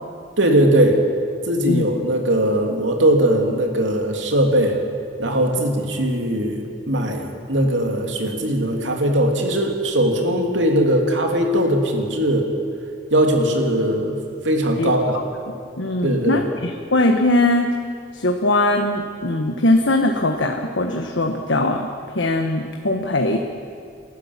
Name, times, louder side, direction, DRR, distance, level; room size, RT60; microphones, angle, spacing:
voice 1, 0.4-1.0 1.4-4.8 5.2-12.5 13.1-14.2 14.4-15.2 16.0-16.4, right 1 dB, 90° right, 2 dB, 3.0 m, -19 dB
voice 2, 15.8-17.7 18.1-21.9 22.1-23.4, left 2 dB, 85° left, 4 dB, 1.3 m, -20 dB
29.5 x 12.5 x 7.4 m, 2.5 s
head